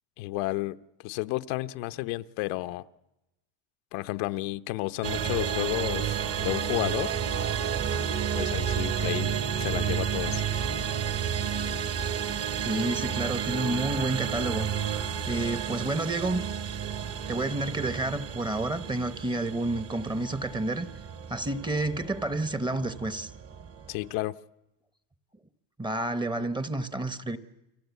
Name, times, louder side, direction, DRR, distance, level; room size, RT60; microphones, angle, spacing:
voice 1, 0.2-0.8 1.0-2.8 3.9-7.1 8.3-10.4 23.9-24.3, left 19 dB, 80° left, 1.0 m, -32 dB
sound 1, 5.0-24.2, right 8 dB, 35° right, 1.2 m, -31 dB
voice 2, 12.6-14.7 15.3-16.5 17.3-20.9 21.3-23.3 25.8-27.4, right 2 dB, 10° right, 0.9 m, -30 dB
29.5 x 23.5 x 8.3 m
cardioid pair, 160°, 43 cm